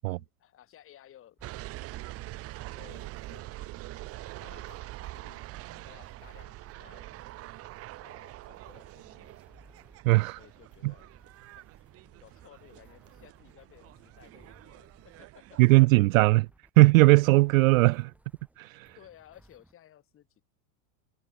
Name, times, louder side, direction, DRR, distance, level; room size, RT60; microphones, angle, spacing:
voice 1, 0.0-1.4 2.7-3.9 4.4-5.4 5.7-7.1 8.0-9.5 10.4-11.1 11.5-11.8 12.2-15.6 16.3-16.4 18.9-20.4, left 11 dB, 25° left, 7.5 m, -57 dB
sound 1, 1.4-19.7, right 1 dB, 5° right, 5.5 m, -61 dB
sound 2, 1.4-15.9, right 17 dB, 30° right, 1.3 m, -45 dB
voice 2, 10.0-10.4 10.8-10.9 15.6-16.5 16.8-18.1 18.6-18.9, right 22 dB, 60° right, 0.5 m, -19 dB
supercardioid pair, 155°, 48 cm